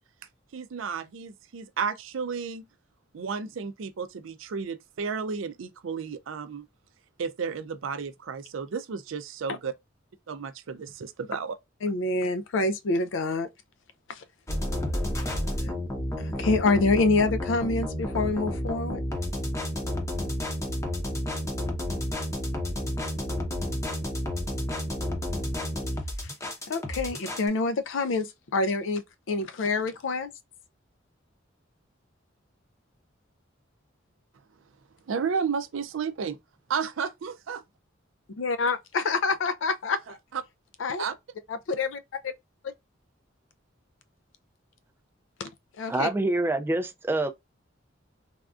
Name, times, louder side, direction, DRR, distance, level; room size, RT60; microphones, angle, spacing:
voice 1, 0.5-2.7 3.1-6.6 7.2-9.7 10.3-11.6 35.1-36.4 36.7-37.6 40.0-40.4 41.0-41.1, right 6 dB, 80° right, 0.4 m, -32 dB
voice 2, 11.8-13.5 14.1-14.2 16.2-19.0 26.7-30.3 38.4-40.2 40.8-41.0 41.7-41.9 45.4-45.5 45.8-46.1, left 3 dB, 75° left, 0.4 m, -26 dB
sound 1, 14.5-27.5, left 1 dB, 15° left, 0.7 m, -31 dB
voice 3, 45.9-47.3, right 2 dB, 10° right, 0.3 m, -26 dB
3.4 x 2.3 x 2.4 m
head